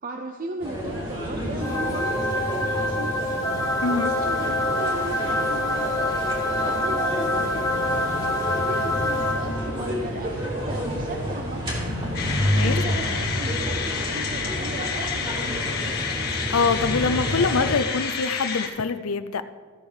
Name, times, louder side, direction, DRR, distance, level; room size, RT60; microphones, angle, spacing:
voice 1, 0.0-6.2 6.6-8.3 8.7-12.2 12.5-16.0, right 2 dB, 40° right, 4 dB, 0.6 m, -37 dB
sound 1, 0.6-17.7, equal, 25° right, 3.0 m, -29 dB
sound 2, 1.6-9.9, left 1 dB, 20° left, 1.3 m, -26 dB
voice 2, 3.8-4.1 12.5-12.8 16.5-19.4, left 4 dB, 85° left, 12 dB, 0.6 m, -24 dB
sound 3, 12.1-18.7, left 6 dB, 50° left, 1.5 m, -30 dB
15.0 x 7.2 x 5.0 m, 1.5 s
head